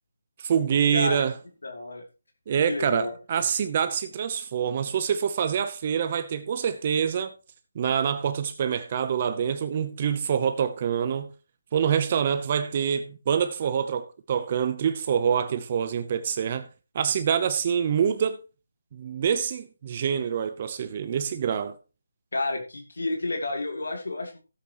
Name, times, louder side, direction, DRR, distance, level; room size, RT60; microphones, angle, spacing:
voice 1, 0.4-1.3 2.5-7.3 7.8-11.3 11.7-16.7 16.9-18.4 18.9-21.8, right 8 dB, 30° right, 0.7 m, -26 dB
voice 2, 0.9-1.2 1.6-2.0 2.7-3.1 22.3-24.4, left 2 dB, 80° left, 2.7 m, -30 dB
15.5 x 8.4 x 3.0 m
figure-of-eight pair, 165°, 0 cm